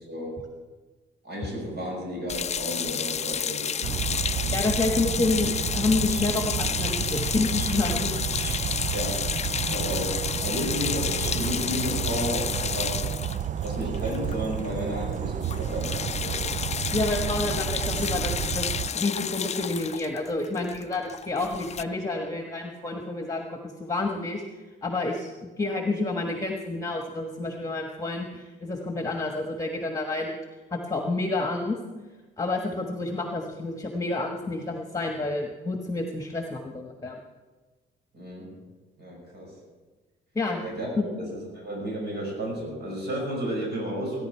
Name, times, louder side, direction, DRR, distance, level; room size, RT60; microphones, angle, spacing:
voice 1, 0.1-0.4 1.2-4.1 4.4-4.5 8.9-9.3 9.6-13.1 13.6-16.5 38.1-38.5 39.0-39.5 40.6-44.3, equal, 60° right, -1 dB, 5.7 m, -32 dB
sound 1, 2.3-14.7 14.9-15.1 15.4-21.8, left 7 dB, 35° left, 0.4 m, -31 dB
sound 2, 3.8-18.9, right 9 dB, 40° right, 0.4 m, -31 dB
voice 2, 4.5-8.2 16.9-18.7 18.9-24.4 24.8-30.4 30.7-31.8 32.4-37.2 40.3-40.6 41.0-41.1, left 3 dB, 15° left, 2 dB, 1.4 m, -29 dB
20.0 x 10.5 x 4.6 m, 1.3 s
cardioid pair, 90°, 20 cm